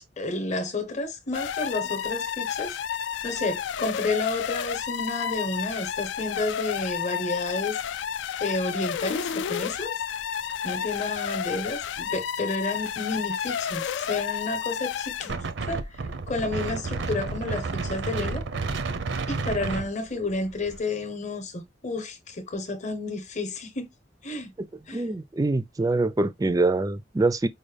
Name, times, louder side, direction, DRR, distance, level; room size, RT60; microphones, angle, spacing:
voice 1, 0.2-2.8 3.2-7.8 8.4-10.0 10.6-15.3 15.6-16.0 16.3-18.5 19.3-23.9 24.2-24.5 24.9-25.0, left 2 dB, 40° left, 0.8 m, -31 dB
sound 1, 1.3-15.4, left 8 dB, 75° left, 0.3 m, -31 dB
Wind, 15.3-20.8, right 3 dB, 80° right, 0.6 m, -31 dB
voice 2, 24.9-27.5, right 2 dB, 20° right, 0.4 m, -24 dB
5.2 x 2.2 x 3.3 m
head